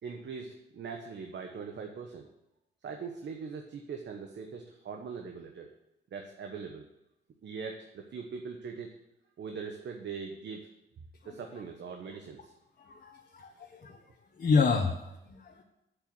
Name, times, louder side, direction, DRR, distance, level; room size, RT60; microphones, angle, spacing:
voice 1, 0.0-2.3 2.8-5.7 6.1-6.9 7.4-8.9 9.4-10.7 11.2-12.5, right 5 dB, 60° right, 3 dB, 1.3 m, -41 dB
voice 2, 12.8-14.0 14.4-15.6, left 4 dB, 45° left, 1 dB, 1.4 m, -29 dB
8.5 x 8.2 x 7.8 m, 0.89 s
cardioid pair, 70°, 20 cm